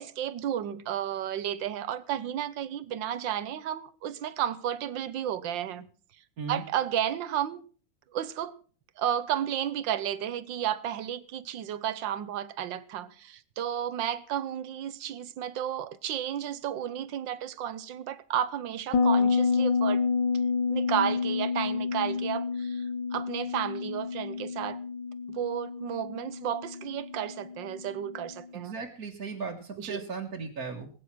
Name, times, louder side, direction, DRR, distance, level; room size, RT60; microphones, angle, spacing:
voice 1, 0.0-5.9 6.5-7.6 8.1-8.5 9.0-20.0 20.7-22.9 23.1-24.8 25.3-28.7 29.8-30.0, right 10 dB, 90° right, 1.7 m, -32 dB
Bass guitar, 18.9-28.3, left 5 dB, 80° left, 1.7 m, -29 dB
voice 2, 28.5-30.9, right 5 dB, 55° right, 2.1 m, -37 dB
20.5 x 9.7 x 6.1 m
omnidirectional pair, 2.0 m